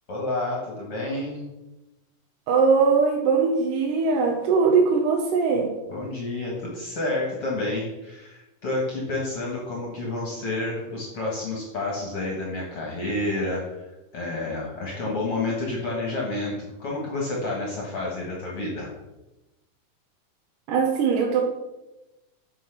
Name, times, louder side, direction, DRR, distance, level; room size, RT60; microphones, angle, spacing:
voice 1, 0.1-1.5 5.9-18.9, left 2 dB, 50° left, -3 dB, 1.9 m, -29 dB
voice 2, 2.5-5.7 20.7-21.4, right 5 dB, 75° right, 0 dB, 2.4 m, -21 dB
7.6 x 6.1 x 5.8 m, 1.0 s
omnidirectional pair, 4.1 m